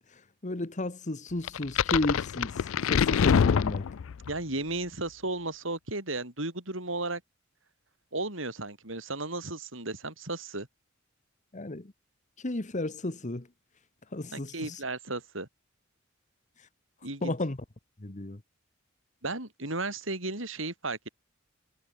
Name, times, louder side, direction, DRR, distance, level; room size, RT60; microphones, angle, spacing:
voice 1, 0.1-4.0 11.5-11.9 12.4-13.5 14.1-14.8 17.2-17.6 18.0-18.4, left 2 dB, 40° left, 1.3 m, -33 dB
sound 1, 1.5-4.3, left 7 dB, 80° left, 0.4 m, -25 dB
voice 2, 4.3-7.2 8.1-10.7 14.3-15.5 17.0-17.3 19.2-21.1, right 2 dB, 70° right, 7.8 m, -34 dB
head